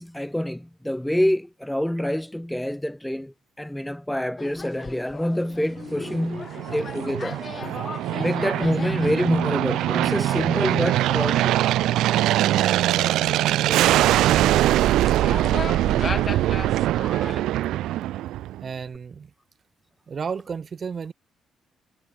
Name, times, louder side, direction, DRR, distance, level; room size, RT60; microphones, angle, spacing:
voice 1, 0.0-7.4 8.2-11.6, left 1 dB, 5° left, 2.3 m, -26 dB
sound 1, 4.4-17.4, left 4 dB, 35° left, 3.9 m, -38 dB
Aircraft, 5.9-18.7, right 14 dB, 85° right, 0.4 m, -22 dB
voice 2, 13.6-14.9 18.6-19.3 20.1-21.1, right 6 dB, 45° right, 5.2 m, -33 dB
cardioid pair, 90°, 0 cm